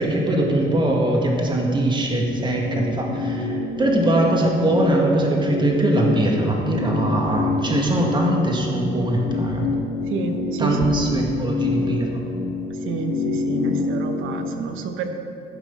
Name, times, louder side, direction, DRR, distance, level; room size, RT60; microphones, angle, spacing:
voice 1, 0.0-9.6 10.6-12.2, right 1 dB, 25° right, -1 dB, 2.0 m, -21 dB
sound 1, 2.0-14.5, left 3 dB, 70° left, 1.7 m, -27 dB
voice 2, 10.0-11.3 12.7-15.1, right 4 dB, 90° right, 6 dB, 1.0 m, -29 dB
15.0 x 6.1 x 5.6 m, 2.7 s
cardioid pair, 90°, 20 cm